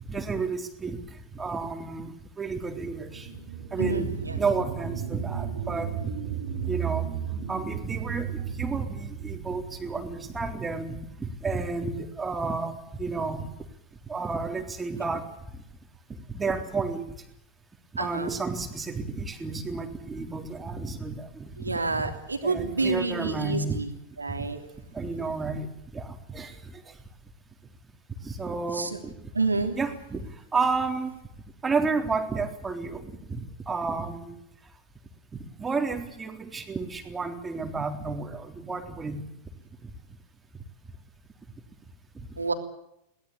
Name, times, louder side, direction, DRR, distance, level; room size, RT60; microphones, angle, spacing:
voice 1, 0.1-1.0 1.3-3.3 3.7-4.1 4.4-5.9 6.3-6.4 6.6-7.1 7.5-13.5 14.1-15.3 16.3-17.0 18.0-21.8 22.4-23.8 24.9-26.5 28.2-29.1 29.8-30.3 30.5-31.1 31.6-34.4 35.6-39.2 42.2-42.3, right 4 dB, 15° right, 5 dB, 3.7 m, -31 dB
sound 1, 2.7-11.8 12.3-12.4, right 8 dB, 55° right, 3.8 m, -35 dB
voice 2, 3.8-4.4 18.0-18.3 21.6-23.9 24.2-24.6 28.7-29.1 29.3-29.8 42.4-42.5, right 3 dB, 80° right, 6 dB, 3.2 m, -29 dB
22.5 x 18.5 x 8.8 m, 0.79 s
figure-of-eight pair, 90°, 0 cm